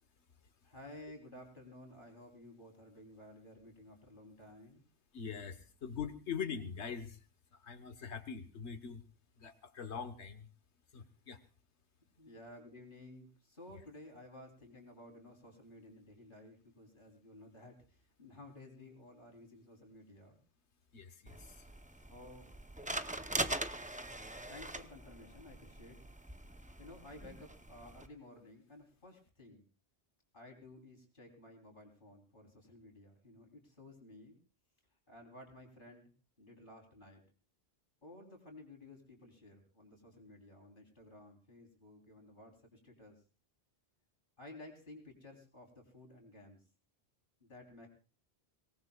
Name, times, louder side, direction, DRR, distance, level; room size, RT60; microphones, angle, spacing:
voice 1, 0.6-4.8 11.0-11.1 12.2-20.4 22.1-22.5 24.5-26.0 26.8-29.6 30.3-34.4 35.1-36.1 36.4-37.2 38.0-43.2 44.4-46.6 47.4-47.9, left 1 dB, 50° left, 1 dB, 3.8 m, -54 dB
voice 2, 5.1-7.3 7.5-9.0 9.4-10.5 10.9-11.4 20.9-21.6, left 6 dB, 85° left, 9 dB, 1.5 m, -43 dB
sound 1, 21.3-28.1, right 1 dB, 10° right, 0.6 m, -42 dB
24.5 x 18.5 x 2.3 m, 0.34 s
omnidirectional pair, 1.1 m